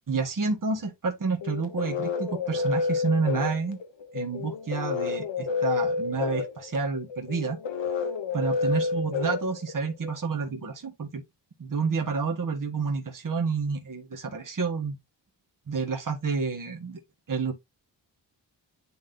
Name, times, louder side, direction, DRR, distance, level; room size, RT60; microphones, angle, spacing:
voice 1, 0.1-3.8 4.1-7.6 8.3-11.2 11.6-15.0 15.7-17.0 17.3-17.5, right 5 dB, 45° right, 1.9 m, -29 dB
sound 1, 1.4-10.1, left 4 dB, 80° left, 1.4 m, -29 dB
10.5 x 3.7 x 2.7 m
cardioid pair, 60°, 44 cm